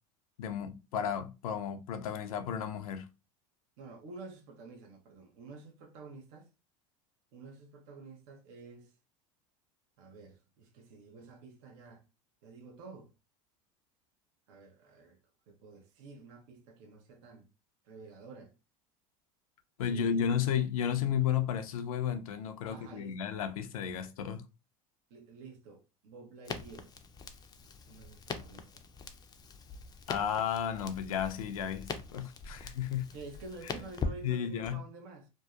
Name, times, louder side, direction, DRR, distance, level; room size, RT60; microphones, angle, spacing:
voice 1, 0.4-3.1 19.8-24.4 30.1-33.1 34.2-34.8, left 8 dB, 85° left, 0.4 m, -33 dB
voice 2, 3.8-6.5 7.3-8.9 10.0-12.0 12.4-13.1 14.5-15.2 15.5-17.5 17.8-18.5 19.9-20.4 22.7-23.4 25.1-26.9 27.6-28.8 33.1-35.3, right 3 dB, 65° right, 0.7 m, -50 dB
Crackle, 26.4-34.7, left 4 dB, 20° left, 0.4 m, -42 dB
2.6 x 2.1 x 2.2 m
hypercardioid pair, 90°, 18 cm